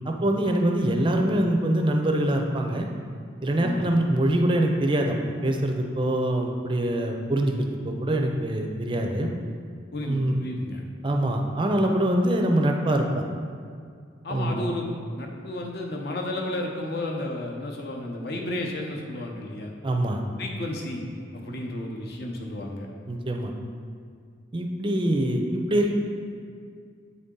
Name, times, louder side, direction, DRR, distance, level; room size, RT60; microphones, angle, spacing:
voice 1, 0.0-2.9 3.4-5.2 5.4-9.3 10.1-10.4 11.0-13.2 14.3-14.7 19.8-20.2 23.1-23.5 24.5-25.4 25.7-25.9, right 1 dB, 25° right, 2 dB, 0.5 m, -24 dB
voice 2, 3.6-4.1 9.9-10.8 14.2-14.9 15.2-19.7 20.4-21.1 21.3-22.9, left 1 dB, 55° left, 0 dB, 0.8 m, -32 dB
8.2 x 4.0 x 3.7 m, 2.2 s
head